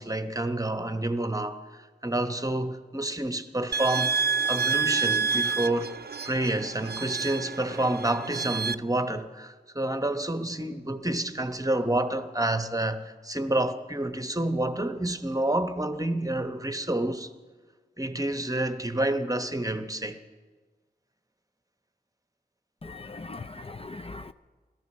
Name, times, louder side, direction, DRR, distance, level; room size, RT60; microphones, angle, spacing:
voice 1, 0.0-4.2 4.5-5.9 6.2-17.3 18.0-20.2, right 1 dB, 20° right, 1.0 m, -29 dB
sound 1, 3.7-8.7, right 5 dB, 65° right, 0.5 m, -28 dB
voice 2, 22.9-24.3, left 3 dB, 35° left, 0.5 m, -40 dB
16.0 x 13.5 x 6.6 m
wide cardioid pair, 60°, 17 cm